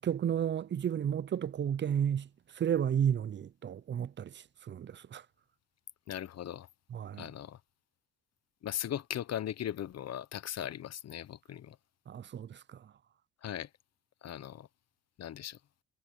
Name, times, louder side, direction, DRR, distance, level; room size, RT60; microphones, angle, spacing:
voice 1, 0.0-2.3 2.6-5.2 6.9-7.3 12.1-12.6, right 9 dB, 40° right, 0.5 m, -32 dB
voice 2, 6.1-6.7 7.2-7.6 8.6-11.8 13.4-13.7 14.2-14.7 15.2-15.6, left 10 dB, 55° left, 1.0 m, -38 dB
cardioid pair, 90°, 30 cm